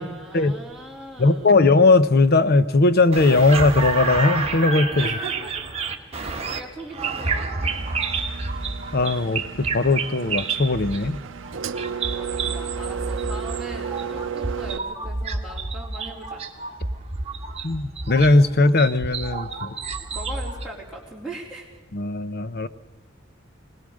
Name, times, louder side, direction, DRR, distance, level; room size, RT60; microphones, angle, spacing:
voice 1, 0.0-1.6 4.9-5.6 6.1-7.5 12.1-16.4 20.1-21.8, right 1 dB, 5° left, -7 dB, 3.4 m, -39 dB
voice 2, 1.2-5.1 8.9-11.2 17.6-19.7 21.9-22.7, left 3 dB, 50° left, 13 dB, 0.8 m, -18 dB
sound 1, 3.1-20.7, right 4 dB, 30° right, 1.6 m, -29 dB
Engine, 7.6-14.8, right 7 dB, 70° right, 0.6 m, -34 dB
21.0 x 19.5 x 6.4 m, 1.3 s
head